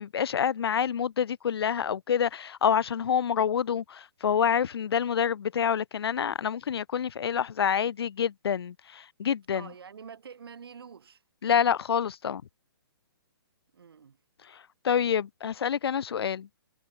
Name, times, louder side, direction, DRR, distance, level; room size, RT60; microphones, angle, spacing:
voice 1, 0.0-9.7 11.4-12.4 14.4-16.5, left 8 dB, 80° left, 0.4 m, -27 dB
voice 2, 9.5-11.2 13.7-14.2, right 6 dB, 75° right, 1.8 m, -46 dB
hypercardioid pair, 150°, 13 cm